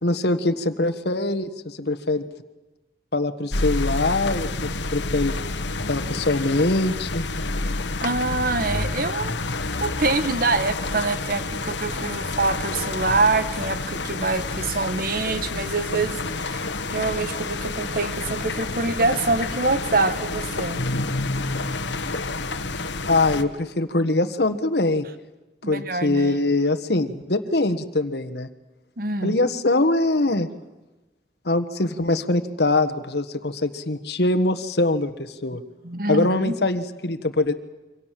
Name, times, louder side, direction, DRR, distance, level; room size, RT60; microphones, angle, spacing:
voice 1, 0.0-2.2 3.1-5.3 5.9-7.2 23.1-25.1 25.7-28.5 29.2-30.5 31.4-35.6 36.1-37.5, left 2 dB, 65° left, 10 dB, 1.5 m, -23 dB
sound 1, 3.5-23.4, left 3 dB, 90° left, 1.4 m, -29 dB
voice 2, 8.0-9.3 9.8-20.8 25.6-26.4 29.0-29.4 35.8-36.6, right 3 dB, 50° right, 11 dB, 1.4 m, -25 dB
27.5 x 25.0 x 7.6 m, 1.1 s
head